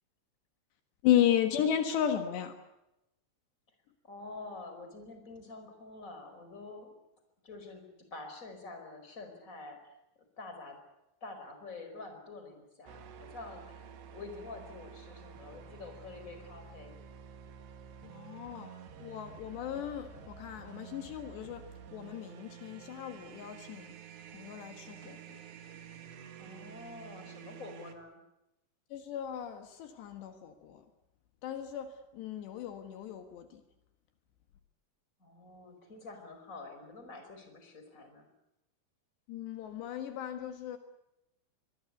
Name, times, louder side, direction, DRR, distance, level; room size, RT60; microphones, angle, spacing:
voice 1, 1.0-2.6 18.0-18.7 19.0-24.0 24.3-25.4 28.9-30.9 31.4-33.6 39.3-40.8, left 10 dB, 75° left, 7 dB, 3.7 m, -34 dB
voice 2, 4.0-6.9 7.4-10.0 10.4-10.8 11.2-17.0 25.0-25.2 26.4-28.2 35.2-38.3, left 3 dB, 20° left, 6 dB, 4.8 m, -47 dB
sound 1, 12.9-27.9, right 7 dB, 70° right, 4.0 m, -50 dB
24.5 x 22.0 x 8.4 m, 0.90 s
omnidirectional pair, 5.1 m